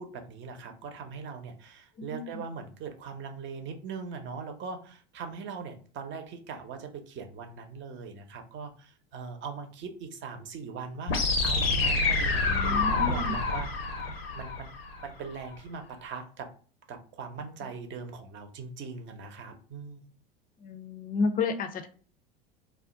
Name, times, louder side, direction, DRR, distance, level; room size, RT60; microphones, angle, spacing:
voice 1, 0.0-11.1 11.4-13.7 14.1-14.7 15.0-16.5 16.9-20.1, right 5 dB, 40° right, 6 dB, 0.7 m, -40 dB
voice 2, 2.0-2.4 12.4-13.3 20.6-21.9, left 4 dB, 30° left, 8 dB, 0.5 m, -31 dB
sound 1, 11.1-15.1, left 3 dB, 80° left, 0.8 m, -27 dB
2.4 x 2.1 x 3.7 m, 0.41 s
hypercardioid pair, 80°, 29 cm